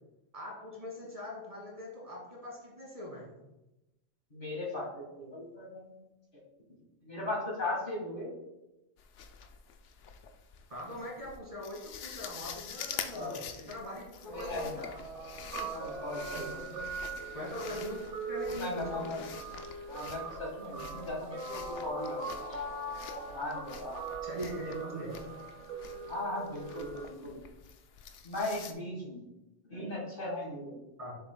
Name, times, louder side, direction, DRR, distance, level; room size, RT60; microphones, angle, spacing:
voice 1, 0.3-3.3 10.7-14.9 15.6-15.7 16.3-16.9 17.3-19.3 20.8-20.9 24.2-25.1 31.0-31.2, left 1 dB, 30° right, -4 dB, 2.1 m, -42 dB
voice 2, 4.3-5.9 6.3-6.4 7.0-8.3 13.1-13.4 14.3-14.8 15.7-16.7 17.0-17.2 18.5-19.3 19.9-22.6 23.3-24.0 26.1-27.4 28.2-29.2 29.7-30.8, left 2 dB, 50° left, -3 dB, 1.9 m, -38 dB
sound 1, 9.0-28.7, left 7 dB, 90° left, 1.0 m, -47 dB
Guitar, 14.3-27.0, right 3 dB, 75° right, 1.4 m, -41 dB
7.9 x 6.6 x 2.2 m, 0.96 s
omnidirectional pair, 1.2 m